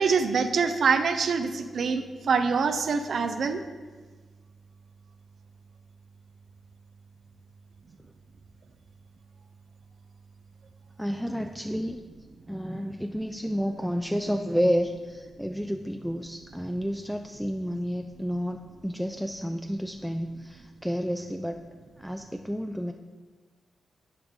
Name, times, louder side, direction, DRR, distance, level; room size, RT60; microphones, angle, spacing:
voice 1, 0.0-3.6, right 5 dB, 65° right, 9 dB, 0.5 m, -25 dB
voice 2, 11.0-12.0 12.5-21.6 22.0-22.9, equal, ahead, 4 dB, 0.4 m, -30 dB
9.7 x 4.9 x 3.7 m, 1.4 s
supercardioid pair, 45°, 0 cm